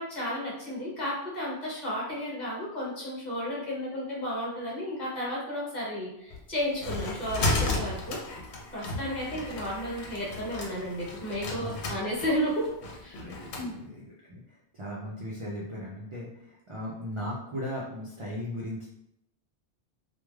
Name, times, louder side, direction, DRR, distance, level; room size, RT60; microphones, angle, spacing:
voice 1, 0.0-8.2 8.7-12.7 13.0-13.2 13.6-13.7, equal, 45° left, -6 dB, 1.0 m, -33 dB
sound 1, 6.3-13.7, left 2 dB, 80° left, 0.9 m, -34 dB
voice 2, 13.2-18.8, equal, 50° right, -5 dB, 0.3 m, -38 dB
3.1 x 2.2 x 2.3 m, 0.81 s
omnidirectional pair, 1.1 m